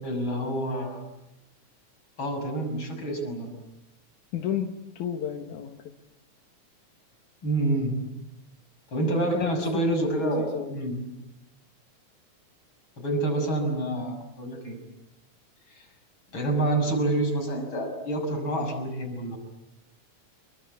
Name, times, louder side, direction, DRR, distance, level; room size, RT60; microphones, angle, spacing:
voice 1, 0.0-1.0 2.2-3.5 7.4-8.0 8.9-11.0 13.0-14.8 15.7-15.9 16.3-19.4, right 1 dB, 40° left, 4 dB, 7.0 m, -28 dB
voice 2, 4.3-5.9 9.0-10.7, left 9 dB, 85° left, 5 dB, 2.9 m, -33 dB
28.5 x 23.5 x 8.4 m, 0.89 s
omnidirectional pair, 3.4 m